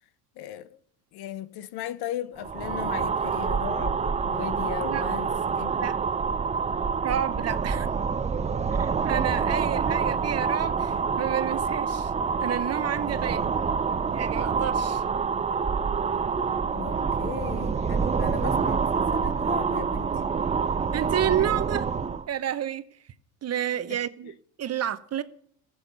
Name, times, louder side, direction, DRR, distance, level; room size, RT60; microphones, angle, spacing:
voice 1, 0.3-0.8 1.1-5.9 16.7-20.2 21.4-21.5 23.9-24.3, left 11 dB, 50° left, 1.0 m, -37 dB
sound 1, 2.4-22.3, right 5 dB, 15° right, 0.6 m, -27 dB
voice 2, 7.0-7.9 8.7-12.1 12.4-13.5 14.1-15.0 20.9-21.8 22.3-22.9 23.4-25.2, right 10 dB, 30° right, 0.9 m, -30 dB
14.0 x 8.1 x 9.3 m
supercardioid pair, 100°, 49 cm